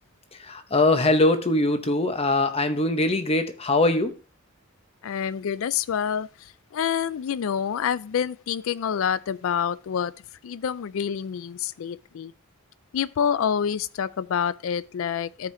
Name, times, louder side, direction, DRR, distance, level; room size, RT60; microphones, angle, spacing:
voice 1, 0.3-4.1, left 2 dB, 30° left, 0.8 m, -22 dB
voice 2, 5.0-10.1 10.4-12.3 12.9-15.5, left 8 dB, 70° left, 0.4 m, -27 dB
13.0 x 4.9 x 2.7 m
head